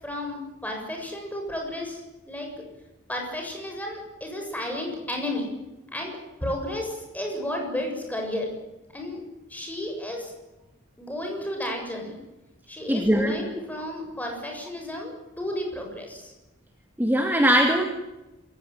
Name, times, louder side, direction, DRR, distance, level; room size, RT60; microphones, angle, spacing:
voice 1, 0.0-2.7 3.1-5.5 5.9-8.5 8.9-9.2 9.5-10.3 11.0-12.1 12.7-16.3, left 1 dB, 10° left, 2 dB, 7.4 m, -33 dB
voice 2, 12.9-13.3 17.0-17.9, equal, 10° right, 4 dB, 2.3 m, -20 dB
27.5 x 16.5 x 9.4 m, 1.0 s
head